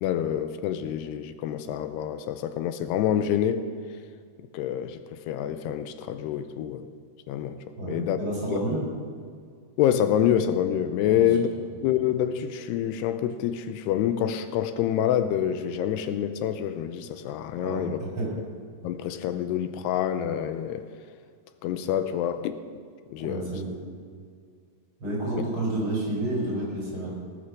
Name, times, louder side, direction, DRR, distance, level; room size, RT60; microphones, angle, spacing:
voice 1, 0.0-3.7 4.5-6.9 7.3-7.6 7.8-8.2 8.5-8.6 9.8-11.5 11.8-18.0 18.8-20.9 21.6-22.6 23.1-23.5, left 10 dB, 90° left, 10 dB, 2.7 m, -27 dB
voice 2, 7.8-8.8 11.1-11.2 17.6-17.9 18.2-18.3 23.2-23.8 25.0-27.1, right 1 dB, 30° right, -4 dB, 5.4 m, -29 dB
18.5 x 8.9 x 6.4 m, 2.1 s
omnidirectional pair, 4.8 m